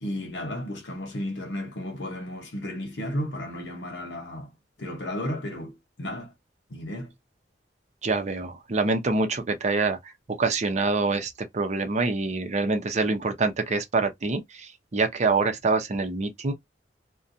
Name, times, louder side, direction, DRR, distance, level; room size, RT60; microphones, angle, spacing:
voice 1, 0.0-4.5 4.8-6.3 6.7-7.1, left 1 dB, 80° left, 0.9 m, -33 dB
voice 2, 8.0-10.0 10.4-16.5, right 3 dB, 40° right, 0.6 m, -25 dB
2.5 x 2.2 x 2.6 m
head